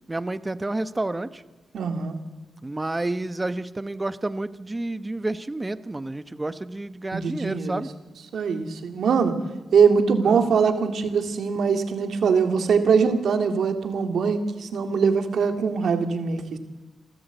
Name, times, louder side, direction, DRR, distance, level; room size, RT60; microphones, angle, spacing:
voice 1, 0.1-1.4 2.6-7.9 10.2-10.5, right 2 dB, 20° right, 13 dB, 1.1 m, -30 dB
voice 2, 1.7-2.2 7.1-7.8 8.3-9.3 9.7-16.6, right 5 dB, 75° right, 7 dB, 2.3 m, -22 dB
27.5 x 13.5 x 8.2 m, 1.2 s
cardioid pair, 70°, 0 cm